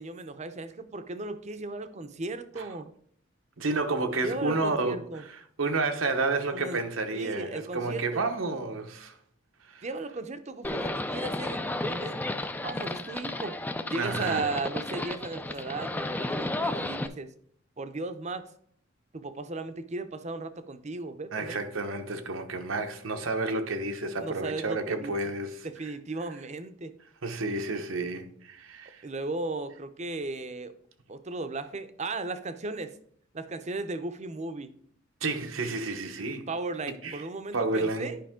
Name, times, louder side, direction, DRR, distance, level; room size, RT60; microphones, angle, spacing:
voice 1, 0.0-2.9 4.2-5.2 6.5-6.8 7.1-8.2 9.8-12.2 12.6-13.6 13.9-17.3 17.8-18.5 19.1-21.6 24.2-25.3 25.6-26.9 29.0-30.7 31.1-32.9 33.3-34.7 36.5-38.2, right 3 dB, 35° right, 0.6 m, -36 dB
voice 2, 3.6-5.2 5.6-9.1 9.7-9.8 13.9-14.5 21.3-25.7 27.2-29.0 35.2-36.5 37.0-37.2 37.5-38.1, right 3 dB, 85° right, 1.0 m, -30 dB
Livestock farm animals working animals, 10.6-17.1, left 1 dB, 10° left, 0.4 m, -33 dB
10.5 x 5.3 x 3.7 m
head